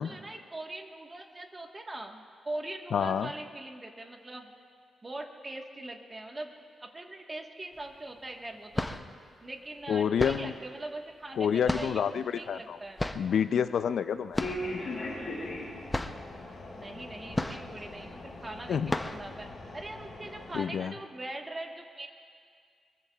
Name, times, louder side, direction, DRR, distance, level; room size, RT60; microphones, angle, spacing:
voice 1, 0.0-4.5 5.0-6.5 6.8-8.9 9.4-13.0 16.7-19.5 19.7-22.1, right 2 dB, 20° right, 2 dB, 1.3 m, -41 dB
voice 2, 2.9-3.3 9.9-10.5 11.4-12.8 13.1-14.4 18.7-19.0 20.5-20.9, left 7 dB, 70° left, 12 dB, 0.4 m, -28 dB
sound 1, 7.8-7.9 8.6-9.2 10.2-10.6 11.7-12.2 13.0-13.4 14.3-14.8 15.0-15.1 15.6-15.7 15.9-16.3 17.3-17.9 18.3-18.4 18.9-19.3, left 1 dB, 10° left, 0.6 m, -33 dB
sound 2, 14.4-20.6, left 1 dB, 40° left, 4.5 m, -40 dB
23.5 x 22.5 x 2.3 m, 2.2 s
wide cardioid pair, 130°, 0 cm